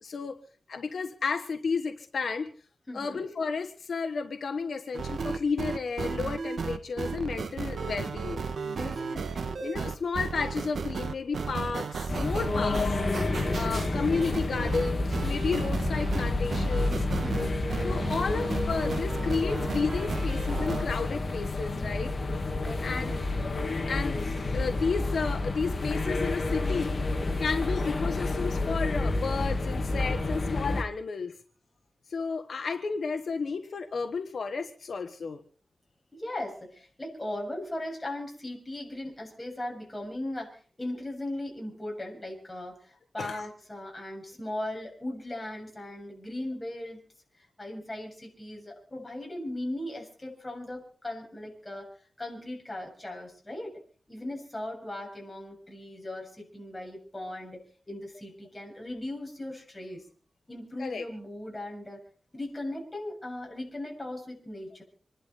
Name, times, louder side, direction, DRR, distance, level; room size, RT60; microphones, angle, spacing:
voice 1, 0.0-0.4 0.7-2.5 2.9-8.5 9.6-13.0 13.5-17.1 17.8-22.1 22.8-23.1 23.9-31.4 32.1-35.4 43.2-43.4 60.8-61.0, left 4 dB, 75° left, 7 dB, 1.3 m, -32 dB
voice 2, 2.9-3.3 8.6-9.7 17.2-17.6 22.6-23.4 36.1-47.0 47.4-51.9 52.2-53.8 54.1-60.0 60.5-62.0 62.3-64.8, left 1 dB, 20° left, 0 dB, 7.2 m, -38 dB
sound 1, 4.9-20.8, right 5 dB, 80° right, 1.3 m, -34 dB
sound 2, 12.1-30.8, left 2 dB, 45° left, 2.2 m, -29 dB
27.0 x 11.5 x 4.2 m, 0.43 s
wide cardioid pair, 110°, 0 cm